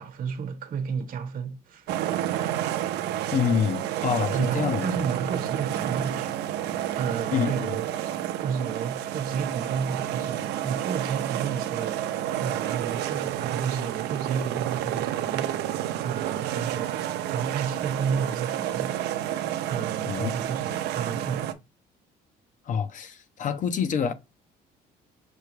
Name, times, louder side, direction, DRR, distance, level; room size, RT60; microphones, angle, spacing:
voice 1, 0.0-1.9 4.3-6.4 7.0-15.8 16.0-19.3 19.7-21.5, right 6 dB, 55° right, 1.1 m, -32 dB
sound 1, 1.9-21.5, right 12 dB, 80° right, 0.6 m, -30 dB
voice 2, 3.3-4.9 7.3-7.7 20.1-20.3 22.7-24.1, left 7 dB, 50° left, 0.7 m, -26 dB
6.1 x 2.3 x 3.2 m
cardioid pair, 110°, 17 cm